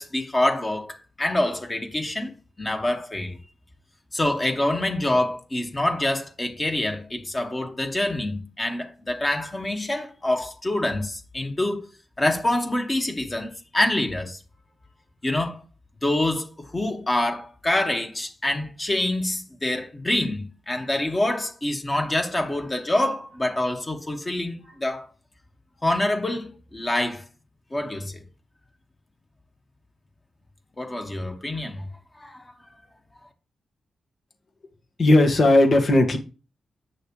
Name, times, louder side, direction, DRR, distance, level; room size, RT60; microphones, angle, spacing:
voice 1, 0.0-2.3 2.6-3.4 4.1-11.8 12.2-14.4 15.2-15.6 16.0-25.1 25.8-27.2 27.7-28.2 30.8-31.9 32.2-32.4, left 1 dB, 25° left, 1.8 m, -26 dB
voice 2, 35.0-36.2, left 2 dB, 55° left, 1.9 m, -16 dB
9.7 x 6.3 x 3.3 m
cardioid pair, 80°, 0 cm